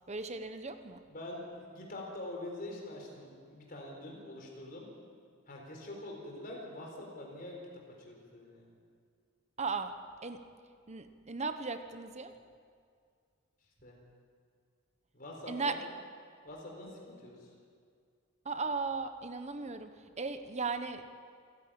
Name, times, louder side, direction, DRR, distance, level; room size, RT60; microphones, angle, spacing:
voice 1, 0.1-1.0 9.6-10.0 10.2-10.4 10.9-12.3 15.5-15.8 18.4-21.1, right 4 dB, 35° right, 9 dB, 1.0 m, -37 dB
voice 2, 1.1-4.9 5.5-7.6 8.1-8.7 13.8-14.0 15.1-15.8 16.4-17.5, left 1 dB, 45° left, 0 dB, 4.2 m, -45 dB
28.0 x 10.5 x 8.8 m, 2.2 s
head